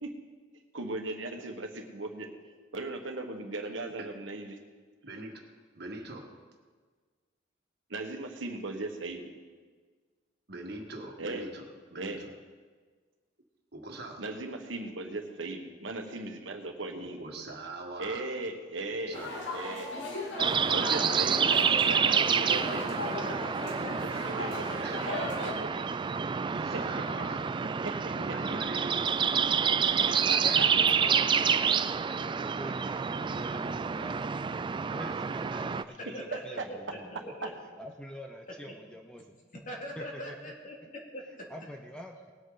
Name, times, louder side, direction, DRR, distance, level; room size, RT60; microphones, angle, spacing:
voice 1, 0.7-2.3 2.7-4.6 7.9-9.3 11.2-11.5 11.9-12.2 14.2-17.4 18.0-19.2 19.5-19.9 20.7-24.1 24.4-25.8 27.8-28.1 30.3-30.7 42.2-42.3, right 2 dB, 85° right, 4 dB, 1.4 m, -38 dB
voice 2, 3.6-4.1 5.0-5.3 5.7-6.3 10.5-12.3 13.7-14.2 16.9-18.2 19.1-19.4 20.7-21.1 24.8-25.1 26.5-27.4 28.2-29.2, right 2 dB, 60° right, 2 dB, 1.7 m, -42 dB
sound 1, 19.1-25.5, left 2 dB, 65° left, 2.4 m, -37 dB
sound 2, 20.4-35.8, right 6 dB, 25° right, 0.3 m, -28 dB
voice 3, 30.1-34.5 34.9-37.2 37.8-39.3 40.0-40.5 41.5-42.3, equal, 5° left, 2 dB, 0.7 m, -45 dB
voice 4, 36.1-37.5 39.5-41.5, equal, 45° left, -1 dB, 2.6 m, -42 dB
20.0 x 8.4 x 4.0 m, 1.5 s
head